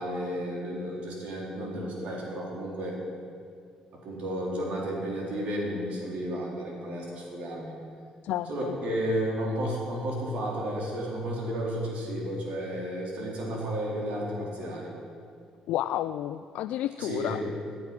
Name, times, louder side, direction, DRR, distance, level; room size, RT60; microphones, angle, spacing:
voice 1, 0.0-3.0 4.0-7.7 8.5-14.9 17.0-17.4, equal, 70° right, -3 dB, 3.9 m, -32 dB
voice 2, 8.2-8.7 15.7-17.4, left 13 dB, 80° left, 11 dB, 0.3 m, -31 dB
17.5 x 9.7 x 6.0 m, 2.4 s
cardioid pair, 90°, 2 cm